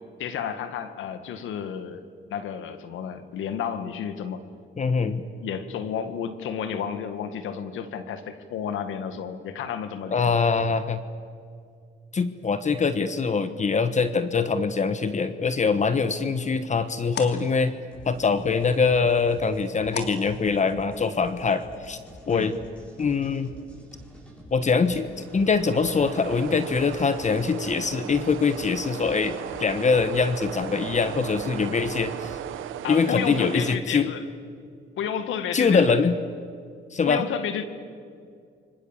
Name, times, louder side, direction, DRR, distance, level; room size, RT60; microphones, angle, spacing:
voice 1, 0.2-2.0 2.3-4.4 5.4-10.4 22.3-22.5 32.8-34.2 35.0-36.1 37.0-37.7, left 8 dB, 85° left, 10 dB, 1.8 m, -31 dB
voice 2, 4.8-5.2 10.1-11.0 12.1-17.8 18.0-22.0 22.3-22.5 23.0-23.5 24.5-32.4 32.9-34.1 35.5-36.2 36.9-37.2, left 5 dB, 35° left, 11 dB, 1.3 m, -23 dB
sound 1, 15.7-21.1, left 5 dB, 60° left, 2.8 m, -42 dB
sound 2, 17.9-32.7, equal, 5° left, 7.3 m, -47 dB
sound 3, 25.1-33.8, right 11 dB, 85° right, 1.0 m, -37 dB
29.5 x 25.0 x 7.4 m, 2.2 s
cardioid pair, 90°, 20 cm